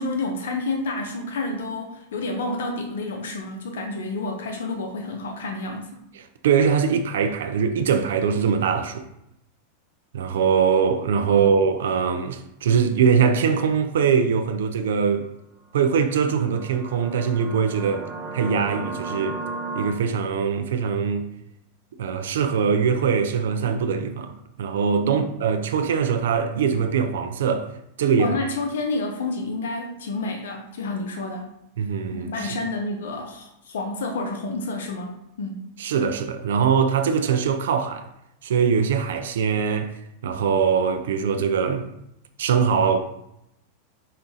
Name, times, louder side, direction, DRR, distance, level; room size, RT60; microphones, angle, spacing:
voice 1, 0.0-6.0 11.3-11.5 25.0-25.3 28.2-31.5 32.1-35.6, left 2 dB, 80° left, 0.7 m, -29 dB
voice 2, 6.2-9.0 10.1-15.3 15.7-18.1 18.3-19.4 19.7-21.3 22.0-27.7 28.0-28.4 31.8-32.6 35.8-38.1 38.4-39.9 40.2-41.9 42.4-43.0, right 6 dB, 80° right, 0.4 m, -22 dB
sound 1, 15.9-19.9, right 3 dB, 30° right, 0.7 m, -35 dB
5.1 x 2.3 x 4.0 m
hypercardioid pair, 120°, 0 cm